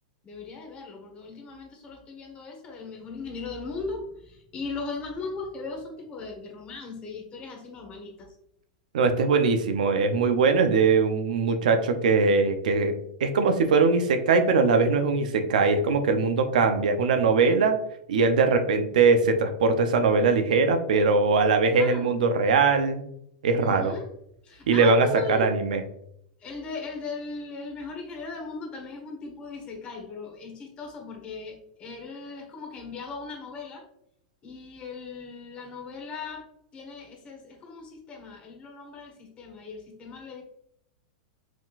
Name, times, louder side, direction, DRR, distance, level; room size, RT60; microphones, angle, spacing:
voice 1, 0.2-8.3 21.8-22.1 23.6-24.1 24.4-25.6 26.4-33.8 34.4-40.4, left 4 dB, 25° left, 2 dB, 1.3 m, -38 dB
voice 2, 8.9-12.9 13.2-17.8 18.1-23.0 23.4-23.9 24.7-25.8, right 4 dB, 80° right, 7 dB, 0.6 m, -21 dB
4.8 x 3.7 x 2.5 m, 0.76 s
hypercardioid pair, 130°, 4 cm